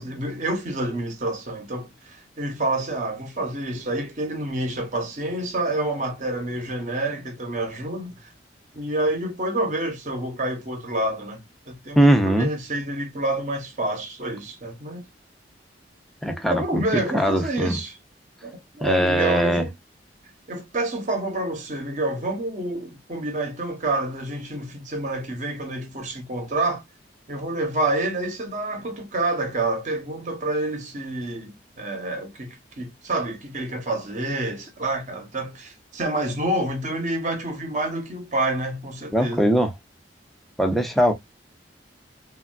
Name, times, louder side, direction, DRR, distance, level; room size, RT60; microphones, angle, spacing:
voice 1, 0.0-8.3 8.7-11.4 11.7-12.0 12.2-15.0 16.5-18.0 18.4-19.7 20.5-26.8 27.3-39.5, right 2 dB, 40° right, 0.8 m, -28 dB
voice 2, 12.0-12.5 16.2-16.8 17.1-17.8 18.8-19.6 39.1-39.7 40.6-41.1, right 1 dB, ahead, 0.5 m, -20 dB
3.4 x 2.3 x 2.2 m
head